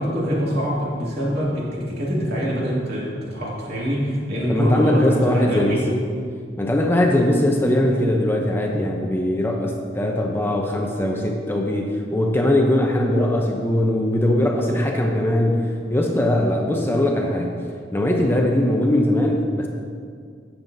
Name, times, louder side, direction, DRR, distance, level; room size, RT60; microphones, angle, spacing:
voice 1, 0.0-5.8, equal, 60° right, -6 dB, 2.6 m, -24 dB
voice 2, 4.5-6.1 6.6-17.6 17.9-19.7, left 1 dB, 15° left, 1 dB, 0.7 m, -20 dB
14.0 x 7.4 x 2.7 m, 2.1 s
head